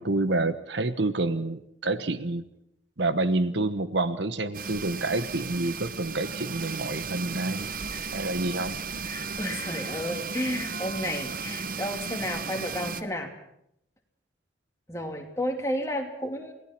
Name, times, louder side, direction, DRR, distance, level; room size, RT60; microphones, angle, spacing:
voice 1, 0.0-2.4 3.0-8.8, right 2 dB, 65° right, 12 dB, 1.2 m, -28 dB
sound 1, 4.5-13.0, right 5 dB, 45° right, 0.9 m, -35 dB
voice 2, 9.0-13.3 14.9-16.5, equal, 15° left, 2 dB, 2.9 m, -32 dB
28.5 x 18.5 x 6.0 m, 0.76 s
head